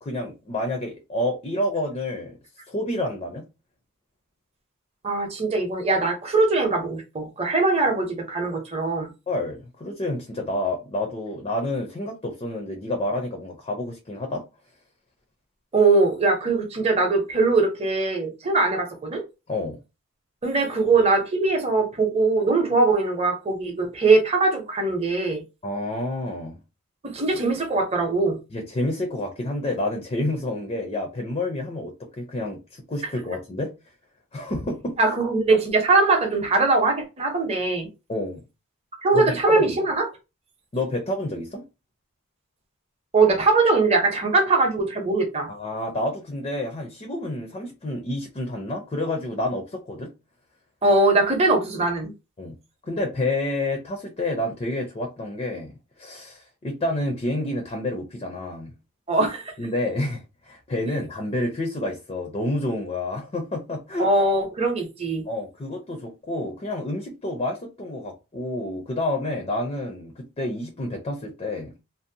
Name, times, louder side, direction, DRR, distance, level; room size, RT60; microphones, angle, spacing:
voice 1, 0.0-2.4 2.7-3.4 9.3-14.4 19.5-19.8 25.6-26.6 28.5-33.7 34.3-35.0 38.1-38.4 39.1-39.8 40.7-41.6 45.5-50.1 52.4-52.6 52.8-58.7 59.6-64.1 65.3-71.7, left 1 dB, 25° left, 0.4 m, -29 dB
voice 2, 5.0-9.1 15.7-19.2 20.4-25.4 27.0-28.4 35.0-37.9 39.0-40.1 43.1-45.5 50.8-52.1 59.1-59.5 64.0-65.2, right 3 dB, 25° right, 0.7 m, -21 dB
2.6 x 2.0 x 2.6 m
head